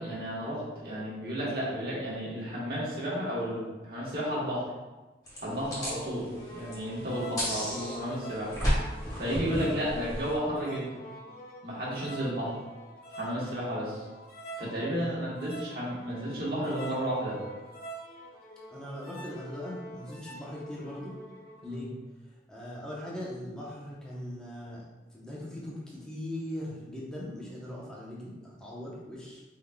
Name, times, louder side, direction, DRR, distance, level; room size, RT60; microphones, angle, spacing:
voice 1, 0.0-4.6 5.4-6.2 6.5-8.5 9.0-10.9 11.6-12.6 13.1-14.0 14.6-17.4 21.6-21.8, equal, 55° right, -7 dB, 1.3 m, -32 dB
sound 1, 5.3-10.4, equal, 20° left, 1.3 m, -33 dB
sound 2, 6.3-21.7, right 1 dB, 55° left, 0.7 m, -46 dB
voice 2, 18.7-21.2 21.6-21.9 22.3-24.8 25.1-29.4, left 1 dB, 5° left, -6 dB, 0.8 m, -40 dB
4.8 x 3.8 x 2.3 m, 1.2 s
head